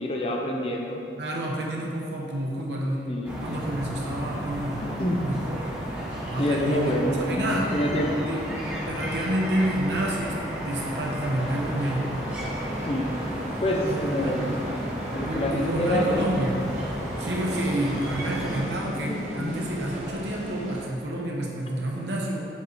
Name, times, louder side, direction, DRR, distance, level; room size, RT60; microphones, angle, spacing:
voice 1, 0.0-1.1 3.1-3.4 4.8-5.3 6.4-8.3 12.8-13.2 13.6-14.5 15.1-16.3 18.2-19.7, equal, 30° left, 0 dB, 0.5 m, -27 dB
voice 2, 1.2-3.1 3.4-4.8 5.2-5.8 6.2-6.9 7.3-7.7 8.3-8.4 8.9-10.4 10.6-12.1 13.8-14.6 15.2-16.6 17.2-22.5, right 1 dB, 80° right, -2 dB, 0.9 m, -29 dB
sound 1, 3.2-18.6, equal, 10° right, 1.2 m, -33 dB
sound 2, 10.4-20.9, right 1 dB, 40° right, 0.7 m, -38 dB
7.3 x 3.2 x 4.1 m, 2.7 s
head